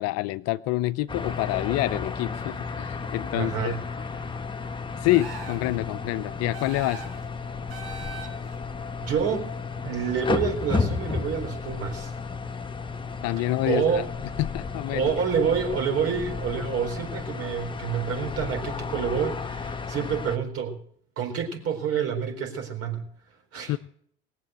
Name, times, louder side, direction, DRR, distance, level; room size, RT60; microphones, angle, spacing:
voice 1, 0.0-3.8 5.0-7.0 13.2-14.0 14.4-15.0 23.7-23.8, left 17 dB, 55° left, 16 dB, 0.5 m, -27 dB
sound 1, 1.1-20.4, left 4 dB, 15° left, 1.1 m, -33 dB
voice 2, 3.3-3.8 7.9-8.0 9.0-9.5 9.8-12.1 13.4-14.1 14.9-20.8 21.2-23.0 23.5-23.8, right 7 dB, 50° right, 3 dB, 4.1 m, -28 dB
sound 2, 5.0-5.7 6.5-7.2 7.7-8.5, right 4 dB, 80° right, 4.6 m, -40 dB
19.0 x 7.6 x 7.9 m, 0.65 s
hypercardioid pair, 75°, 31 cm